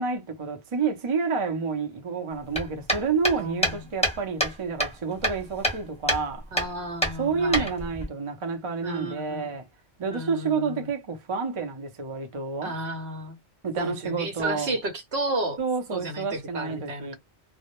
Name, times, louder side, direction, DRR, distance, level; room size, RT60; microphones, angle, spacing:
voice 1, 0.0-6.4 7.2-9.6 10.0-12.7 13.6-14.7 15.6-17.2, right 5 dB, 35° right, 0.5 m, -29 dB
sound 1, 2.5-4.5 4.8-5.8 6.1-6.2 6.6-6.7 7.0-8.0, equal, 5° left, 1.0 m, -26 dB
voice 2, 3.4-3.8 6.5-7.7 8.8-9.5 10.1-10.9 12.6-13.4 13.8-15.6 15.9-17.2, right 1 dB, 65° right, 0.9 m, -32 dB
2.2 x 2.0 x 2.9 m
omnidirectional pair, 1.2 m